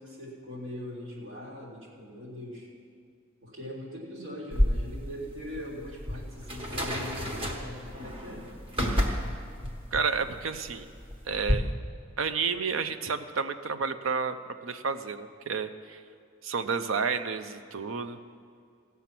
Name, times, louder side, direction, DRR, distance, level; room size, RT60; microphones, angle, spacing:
voice 1, 0.0-2.7 3.4-8.5, left 1 dB, 70° right, -4 dB, 3.2 m, -41 dB
sound 1, 4.5-11.5, equal, 30° right, 1.3 m, -31 dB
voice 2, 9.9-10.9 11.3-11.8 12.2-14.4 14.6-16.0 16.4-18.2, right 5 dB, 90° right, 11 dB, 0.6 m, -30 dB
17.0 x 7.0 x 5.9 m, 2.3 s
head